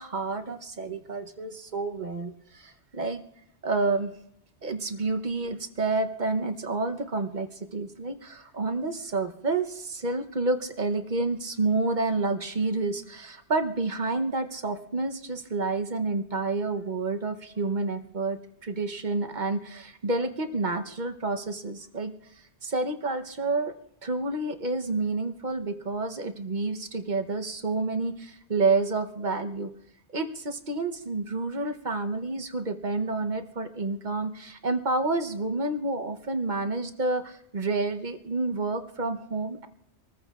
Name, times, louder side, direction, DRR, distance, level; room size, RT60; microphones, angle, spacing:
voice 1, 0.0-3.2 3.6-4.1 4.6-22.1 22.6-23.7 24.0-29.7 30.1-39.7, right 3 dB, 45° right, 7 dB, 1.0 m, -29 dB
26.5 x 14.5 x 2.4 m, 0.77 s
omnidirectional pair, 1.2 m